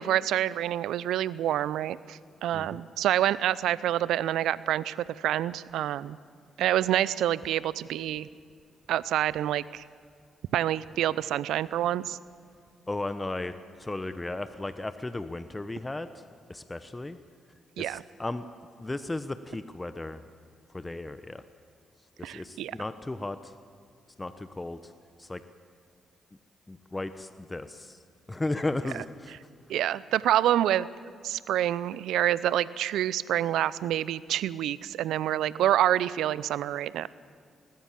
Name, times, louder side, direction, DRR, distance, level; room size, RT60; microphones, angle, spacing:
voice 1, 0.0-6.2 6.6-8.3 8.9-9.8 10.5-12.2 17.8-18.0 22.2-22.8 28.9-29.0 29.3-29.4 29.7-30.9 31.2-37.1, right 12 dB, 75° right, 19 dB, 0.5 m, -27 dB
voice 2, 12.9-13.5 13.8-16.1 16.5-17.2 17.8-18.4 18.8-20.2 20.7-21.4 22.2-23.4 24.2-24.8 25.2-25.4 26.7-28.0 28.3-29.3, left 2 dB, 20° left, 11 dB, 1.1 m, -35 dB
21.0 x 19.0 x 7.5 m, 2.2 s
hypercardioid pair, 40°, 0 cm